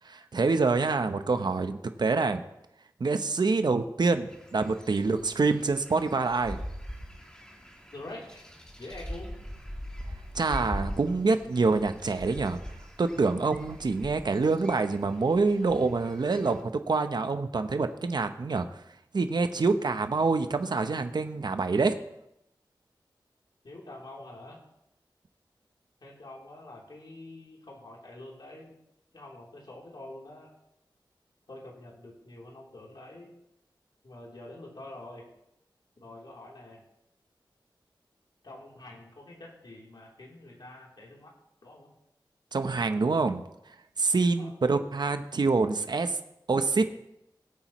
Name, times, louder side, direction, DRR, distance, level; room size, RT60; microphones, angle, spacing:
voice 1, 0.1-2.4 3.0-6.6 10.3-12.6 13.0-18.7 19.1-22.0 42.5-43.4 44.0-46.2 46.5-46.8, right 4 dB, 60° right, 9 dB, 0.8 m, -26 dB
sound 1, 4.3-16.6, equal, 10° left, 1.5 m, -42 dB
voice 2, 7.9-8.5 8.7-9.3 23.6-24.6 26.0-28.8 29.1-30.5 31.5-33.3 34.0-35.3 36.0-36.8 38.4-41.4 41.6-41.9 44.3-44.6, left 2 dB, 65° left, -3 dB, 3.3 m, -46 dB
19.0 x 8.6 x 3.1 m, 0.84 s
wide cardioid pair, 90°, 8 cm